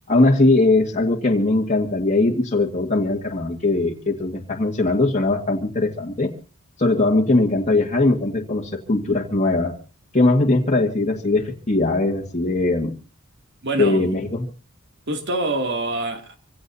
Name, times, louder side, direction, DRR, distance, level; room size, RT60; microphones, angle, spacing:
voice 1, 0.1-6.3 6.8-9.7 10.1-12.9 13.8-14.5, left 2 dB, 35° left, 1.9 m, -20 dB
voice 2, 13.6-14.1 15.1-16.4, right 2 dB, 55° right, 2.6 m, -25 dB
26.0 x 16.5 x 2.8 m
head